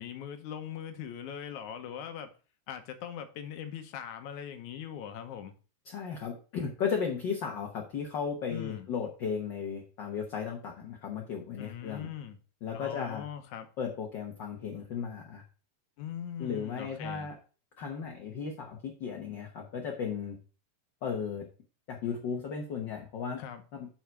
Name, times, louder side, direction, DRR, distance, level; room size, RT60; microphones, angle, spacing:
voice 1, 0.0-2.3 2.7-5.6 8.5-8.9 11.6-12.4 12.7-13.7 16.0-17.3 23.4-23.6, left 9 dB, 85° left, 2.3 m, -41 dB
voice 2, 5.8-12.1 12.6-13.3 13.8-15.4 16.4-17.4 17.8-20.4 21.0-21.5 21.9-23.4 23.7-23.9, left 6 dB, 60° left, 1.2 m, -35 dB
8.6 x 4.7 x 4.5 m
omnidirectional pair, 3.4 m